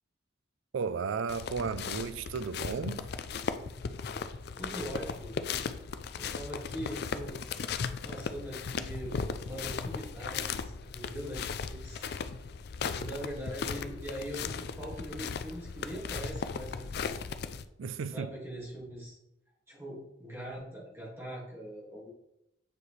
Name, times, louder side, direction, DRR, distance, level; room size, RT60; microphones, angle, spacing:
voice 1, 0.7-3.1 17.8-18.3, right 5 dB, 80° right, 0.4 m, -34 dB
sound 1, 1.3-17.6, left 5 dB, 50° left, 0.4 m, -37 dB
voice 2, 4.5-5.3 6.1-7.4 8.0-12.1 12.9-17.1 18.1-19.2 19.7-22.1, right 1 dB, 15° right, 2.0 m, -42 dB
8.3 x 4.8 x 3.2 m
head